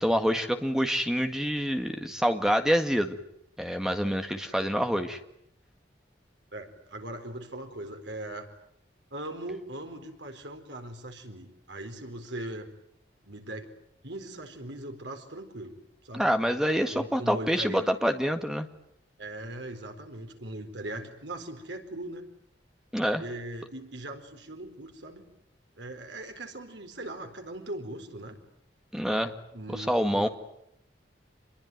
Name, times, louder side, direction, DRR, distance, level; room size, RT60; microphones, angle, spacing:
voice 1, 0.0-3.2 3.6-5.2 16.1-18.7 22.9-23.2 28.9-29.3 29.7-30.3, equal, 5° right, 6 dB, 1.7 m, -26 dB
voice 2, 6.5-8.5 9.1-12.7 13.2-13.7 14.0-15.7 16.0-16.3 16.9-17.8 19.2-22.2 23.2-25.3 25.8-28.4 29.5-30.3, right 1 dB, 80° right, 5 dB, 4.4 m, -40 dB
27.0 x 22.0 x 9.4 m, 0.77 s
head